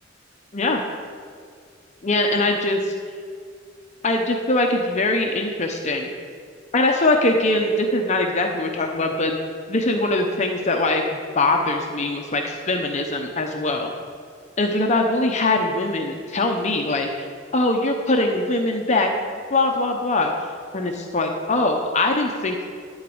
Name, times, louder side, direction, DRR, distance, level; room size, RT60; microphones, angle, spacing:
voice 1, 2.0-2.8 4.0-6.1 6.7-9.4 9.7-13.9 14.6-17.3 17.5-19.1 19.5-20.3 20.7-22.7, left 2 dB, 40° left, 3 dB, 0.7 m, -22 dB
12.0 x 4.0 x 7.8 m, 2.2 s
head